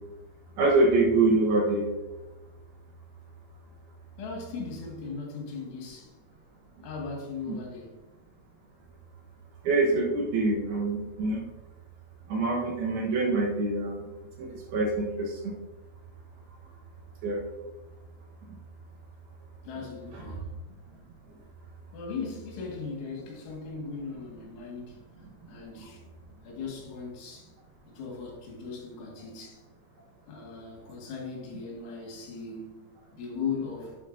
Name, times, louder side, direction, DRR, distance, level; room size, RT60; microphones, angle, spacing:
voice 1, 0.6-1.8 7.5-7.6 9.6-11.4 12.3-14.1 14.4-15.6 17.2-17.4, right 2 dB, 70° right, -1 dB, 2.7 m, -25 dB
voice 2, 4.2-6.1 6.8-8.0 19.6-20.4 21.9-25.0 25.5-26.0 26.4-27.5 28.0-29.6 30.3-32.8 33.1-34.0, left 5 dB, 80° left, -1 dB, 4.3 m, -38 dB
9.1 x 8.9 x 2.6 m, 1.1 s
omnidirectional pair, 5.4 m